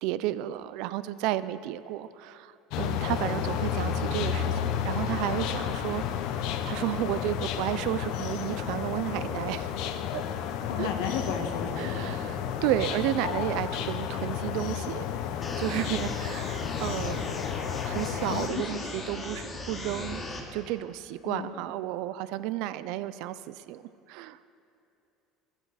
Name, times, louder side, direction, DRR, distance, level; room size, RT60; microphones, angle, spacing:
voice 1, 0.0-6.0 6.6-9.7 10.1-10.2 10.8-10.9 11.8-15.0 15.6-17.3 17.8-20.2 20.5-23.8 24.1-24.4, right 14 dB, 70° right, 15 dB, 0.5 m, -32 dB
sound 1, 2.7-18.5, left 8 dB, 70° left, 0.8 m, -32 dB
voice 2, 10.7-12.0 18.3-18.7 21.2-21.5, left 6 dB, 90° left, 3 dB, 1.5 m, -33 dB
sound 2, 15.4-20.4, left 2 dB, 25° left, 1.7 m, -38 dB
14.5 x 12.5 x 4.1 m, 2.7 s
supercardioid pair, 125°, 0 cm